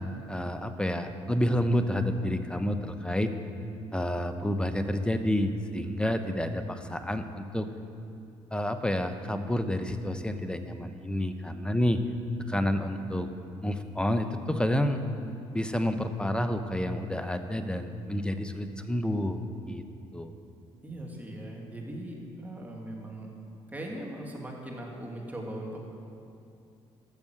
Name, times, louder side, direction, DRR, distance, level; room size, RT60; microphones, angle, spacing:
voice 1, 0.3-3.3 3.9-7.7 8.5-12.0 12.5-13.3 13.6-15.0 15.5-19.4 19.7-19.8 20.1-20.3, left 1 dB, 5° left, 8 dB, 0.9 m, -29 dB
voice 2, 20.8-23.3 23.7-25.7, right 1 dB, 10° right, -1 dB, 2.6 m, -39 dB
12.5 x 6.9 x 6.6 m, 2.6 s
supercardioid pair, 60°, 13 cm